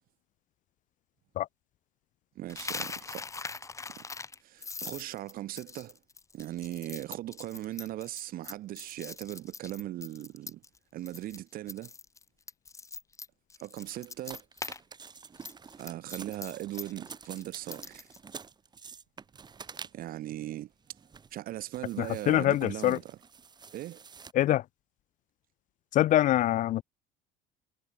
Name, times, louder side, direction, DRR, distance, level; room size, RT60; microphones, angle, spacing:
voice 1, 2.3-3.3 4.0-4.1 4.4-6.0 6.3-10.6 10.9-11.9 13.6-14.4 15.8-18.1 19.9-20.7 21.3-23.0 23.7-24.0, right 14 dB, 55° right, 4.4 m, -39 dB
Coin (dropping), 2.5-10.8 11.1-11.4 11.7-14.8 15.1-18.2, left 4 dB, 15° left, 4.6 m, -42 dB
sound 1, 13.8-20.2 20.8-21.4 21.7-24.3, right 6 dB, 25° right, 4.5 m, -48 dB
voice 2, 22.0-23.0 24.3-24.6 25.9-26.8, left 13 dB, 45° left, 0.7 m, -24 dB
cardioid pair, 140°, 18 cm